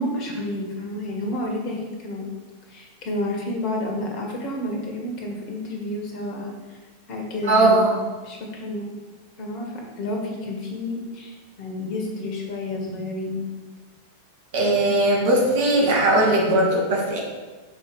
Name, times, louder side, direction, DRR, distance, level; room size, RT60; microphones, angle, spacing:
voice 1, 0.0-2.3 2.7-6.8 7.1-8.0 8.2-8.9 9.4-13.5, left 1 dB, 40° left, 0 dB, 1.7 m, -30 dB
voice 2, 7.5-7.9 14.5-17.2, right 2 dB, 55° right, -3 dB, 1.9 m, -19 dB
6.5 x 5.0 x 4.8 m, 1.3 s
figure-of-eight pair, 90°, 0 cm